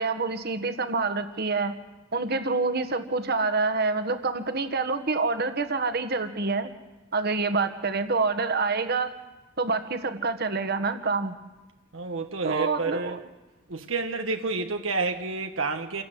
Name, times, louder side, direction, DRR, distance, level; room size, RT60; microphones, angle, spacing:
voice 1, 0.0-1.8 2.1-6.7 7.1-9.1 9.6-11.3 12.4-13.2, right 3 dB, 50° right, 1.6 m, -27 dB
voice 2, 11.9-13.2 13.7-16.0, right 3 dB, 80° right, 1.3 m, -29 dB
27.5 x 16.5 x 7.7 m
head